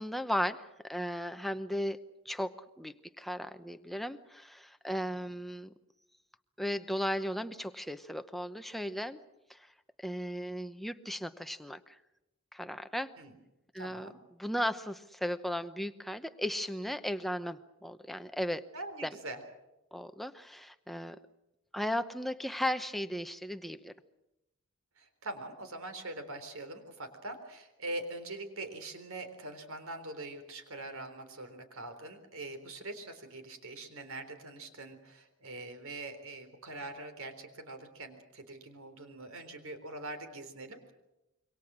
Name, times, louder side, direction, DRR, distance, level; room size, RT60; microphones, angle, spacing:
voice 1, 0.0-2.0 2.2-5.7 6.6-9.2 9.5-9.7 10.0-12.0 12.5-13.1 13.7-18.6 19.0-19.2 19.9-21.2 21.7-23.9, equal, ahead, 9 dB, 0.8 m, -36 dB
voice 2, 13.7-14.2 18.7-19.4 25.0-40.9, right 2 dB, 70° right, 8 dB, 3.9 m, -43 dB
27.0 x 24.0 x 6.2 m, 0.95 s
head